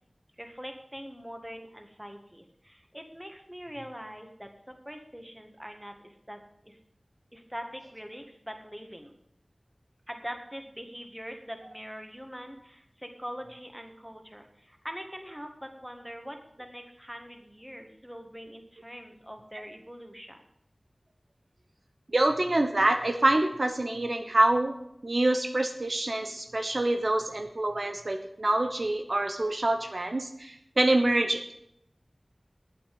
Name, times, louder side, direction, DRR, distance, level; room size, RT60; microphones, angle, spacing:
voice 1, 0.4-6.8 7.3-9.1 10.1-20.4, equal, 5° right, 4 dB, 1.9 m, -43 dB
voice 2, 22.1-24.7 25.0-31.5, right 2 dB, 65° right, 5 dB, 1.1 m, -26 dB
8.9 x 8.6 x 7.8 m, 0.75 s
wide cardioid pair, 40°, 0 cm